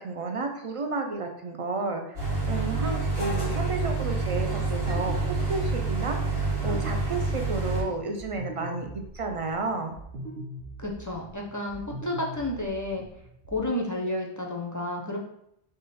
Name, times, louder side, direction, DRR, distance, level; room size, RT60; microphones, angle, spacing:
voice 1, 0.0-2.2 2.5-6.2 6.6-9.9, right 3 dB, 45° right, 4 dB, 0.5 m, -32 dB
sound 1, 2.1-7.8, right 3 dB, 85° right, 2.1 m, -28 dB
sound 2, 8.1-13.7, right 1 dB, 70° right, 1.0 m, -42 dB
voice 2, 10.8-13.0 13.5-15.2, left 1 dB, 25° left, -1 dB, 0.5 m, -31 dB
3.6 x 3.2 x 4.1 m, 0.77 s
omnidirectional pair, 1.0 m